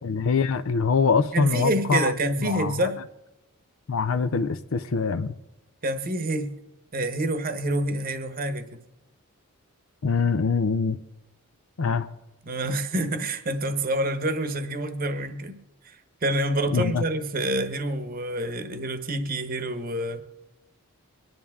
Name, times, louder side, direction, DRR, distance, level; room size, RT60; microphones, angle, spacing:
voice 1, 0.0-2.1 2.4-2.9 3.9-5.3 10.0-11.0 11.8-12.1 16.7-17.0, left 5 dB, 65° left, 0.5 m, -24 dB
voice 2, 1.3-3.0 5.8-6.5 6.9-8.8 12.5-15.6 15.8-20.2, right 1 dB, 40° right, 1.0 m, -27 dB
24.5 x 10.5 x 3.6 m
head